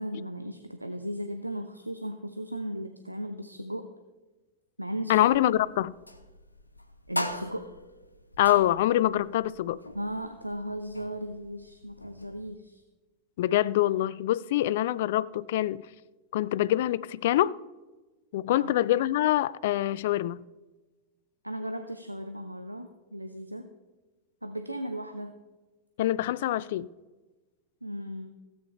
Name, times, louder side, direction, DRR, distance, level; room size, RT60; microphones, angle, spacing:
voice 1, 0.0-3.9 4.8-5.3 7.1-7.7 9.7-12.8 18.5-18.7 21.4-23.7 24.4-25.4 27.8-28.3, equal, 85° right, 0.6 m, -36 dB
voice 2, 5.1-5.9 8.4-9.8 13.4-15.8 16.3-17.6 18.3-20.4 26.0-26.9, left 14 dB, 55° left, 0.3 m, -25 dB
sound 1, 5.2-12.5, left 1 dB, 85° left, 0.7 m, -41 dB
16.0 x 8.7 x 3.3 m
figure-of-eight pair, 90°, 0 cm